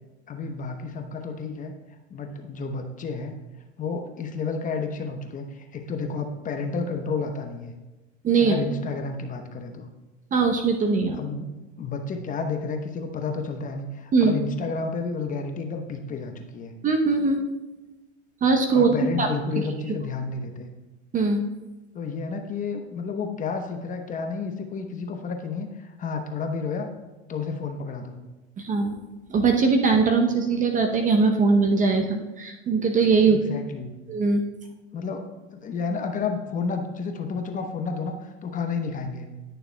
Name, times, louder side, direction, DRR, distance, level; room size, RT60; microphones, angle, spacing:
voice 1, 0.3-1.7 2.1-3.4 3.8-7.7 8.4-9.9 11.1-16.7 18.7-20.7 21.9-26.9 27.3-28.2 33.2-34.0 34.9-35.3 35.6-39.3, left 4 dB, 20° left, 5 dB, 0.9 m, -31 dB
voice 2, 8.2-8.6 10.3-11.2 14.1-14.4 16.8-17.5 18.4-19.3 19.9-20.0 21.1-21.4 28.6-29.0 29.3-33.4 34.1-34.4, right 4 dB, 20° right, 5 dB, 0.8 m, -21 dB
19.0 x 6.8 x 2.2 m, 1.1 s
hypercardioid pair, 110°, 38 cm